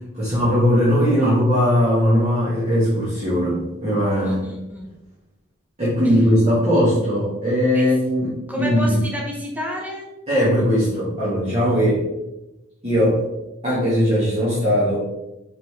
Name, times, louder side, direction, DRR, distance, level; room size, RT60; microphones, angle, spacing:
voice 1, 0.1-4.4 5.8-9.0 10.3-12.0 12.8-13.2 13.6-15.0, equal, 30° right, -10 dB, 2.1 m, -19 dB
voice 2, 4.2-4.9 6.0-6.1 7.7-7.9 8.5-10.1, left 1 dB, 10° right, -2 dB, 1.0 m, -30 dB
5.9 x 5.5 x 3.4 m, 0.97 s
head